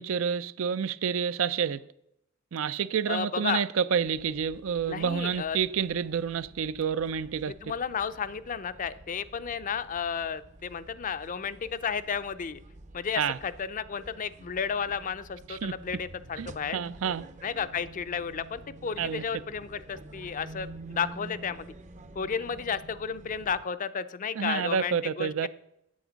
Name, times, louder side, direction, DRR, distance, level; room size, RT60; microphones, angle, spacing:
voice 1, 0.0-1.8 2.5-7.5 13.2-13.4 15.5-15.7 16.4-16.5 16.7-17.3 19.0-19.2 24.4-25.5, right 7 dB, 85° right, 0.4 m, -29 dB
voice 2, 3.1-3.6 4.9-5.6 7.5-12.6 12.9-16.8 17.4-21.7 22.2-25.5, left 6 dB, 40° left, 0.5 m, -33 dB
sound 1, 4.0-23.6, right 2 dB, 40° right, 0.6 m, -49 dB
8.7 x 8.0 x 5.1 m
head